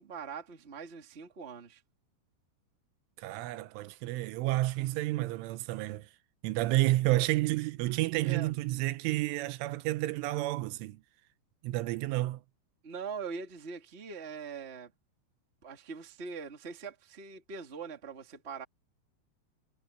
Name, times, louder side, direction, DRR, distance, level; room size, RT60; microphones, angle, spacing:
voice 1, 0.0-1.8 8.2-8.6 12.8-14.9 15.6-18.6, right 5 dB, 25° right, 1.5 m, -42 dB
voice 2, 3.2-6.1 6.4-11.0 11.6-12.4, right 17 dB, 90° right, 3.4 m, -30 dB
omnidirectional pair, 5.4 m